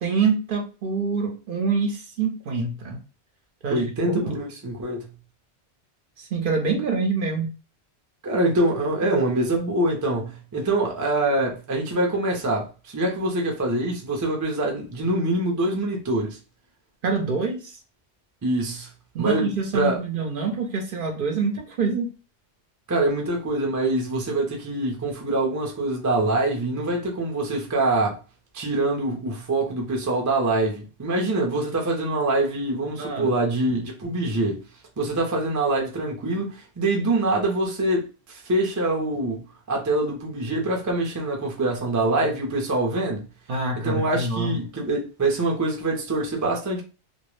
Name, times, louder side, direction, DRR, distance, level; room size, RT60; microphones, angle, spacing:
voice 1, 0.0-3.0 3.6-4.4 6.2-7.5 17.0-17.8 19.1-22.1 33.0-33.4 43.5-44.6, right 4 dB, 60° right, 0.7 m, -26 dB
voice 2, 3.7-5.1 8.2-16.4 18.4-18.9 19.2-20.0 22.9-28.2 28.5-34.6 35.0-39.4 39.7-43.3 43.8-46.8, right 2 dB, 30° right, 0.3 m, -24 dB
2.2 x 2.0 x 3.0 m
omnidirectional pair, 1.1 m